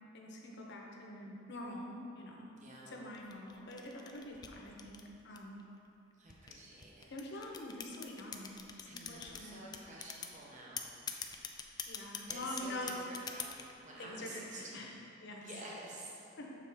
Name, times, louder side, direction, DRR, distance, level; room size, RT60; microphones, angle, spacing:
voice 1, 0.1-2.5 2.9-5.6 7.1-9.6 11.9-13.0 14.0-14.9 15.2-15.5 16.4-16.5, left 1 dB, 60° left, 0 dB, 0.8 m, -45 dB
voice 2, 2.5-2.9 6.2-7.1 8.8-10.9 12.3-14.9 15.4-16.2, right 2 dB, 40° right, -4 dB, 0.8 m, -50 dB
sound 1, 3.1-5.6 6.3-9.4 9.7-10.4 10.8-13.7, left 6 dB, 20° left, 0.3 m, -43 dB
6.7 x 4.8 x 3.5 m, 2.7 s
head